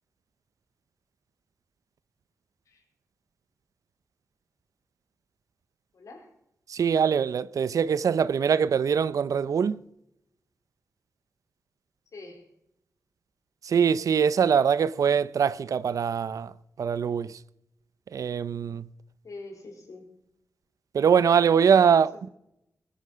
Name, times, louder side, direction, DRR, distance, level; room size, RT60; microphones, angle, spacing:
voice 1, 5.9-6.3 12.1-12.5 19.2-20.0 22.1-22.3, left 3 dB, 75° left, 4.3 m, -44 dB
voice 2, 6.7-9.8 13.6-16.5 16.8-17.4 18.1-18.9 20.9-22.1, right 7 dB, 90° right, 0.6 m, -23 dB
21.0 x 10.0 x 5.7 m
wide cardioid pair, 135°, 6 cm